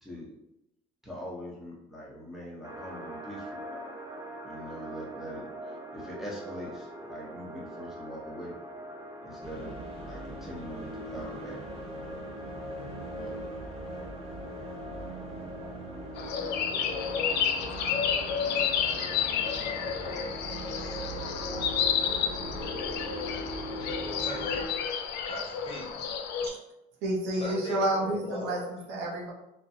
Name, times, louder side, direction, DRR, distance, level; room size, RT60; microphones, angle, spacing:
voice 1, 1.0-3.9 4.4-8.6 9.2-11.7 13.1-13.4, equal, ahead, -5 dB, 0.9 m, -42 dB
sound 1, 2.6-20.2, right 1 dB, 20° right, 0.5 m, -44 dB
sound 2, 9.4-24.6, right 1 dB, 35° right, 0.9 m, -40 dB
sound 3, 16.2-26.5, left 7 dB, 85° left, 0.4 m, -31 dB
voice 2, 24.0-24.7 25.3-26.0 27.3-28.7, left 1 dB, 35° left, 0 dB, 0.6 m, -39 dB
voice 3, 27.0-29.3, right 1 dB, 80° right, -2 dB, 0.8 m, -30 dB
3.0 x 2.2 x 2.7 m, 0.88 s
cardioid pair, 110°, 17 cm